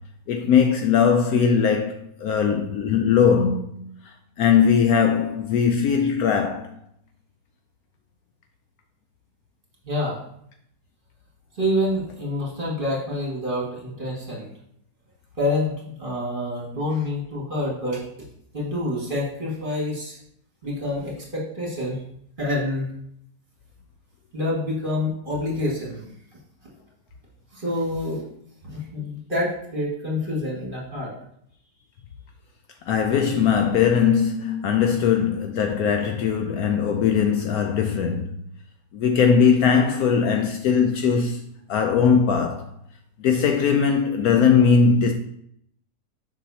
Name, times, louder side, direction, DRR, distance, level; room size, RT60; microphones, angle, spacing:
voice 1, 0.3-3.9 4.4-6.8 32.9-38.4 38.9-41.4 41.7-42.7 43.2-45.1, left 6 dB, 70° left, 1.0 m, -20 dB
voice 2, 9.8-10.2 11.5-14.5 15.4-18.0 18.5-20.2 20.6-22.0 22.4-22.9 24.3-26.0 27.5-28.2 28.6-31.1, left 1 dB, 30° right, 2.1 m, -27 dB
7.2 x 5.5 x 2.8 m
omnidirectional pair, 1.8 m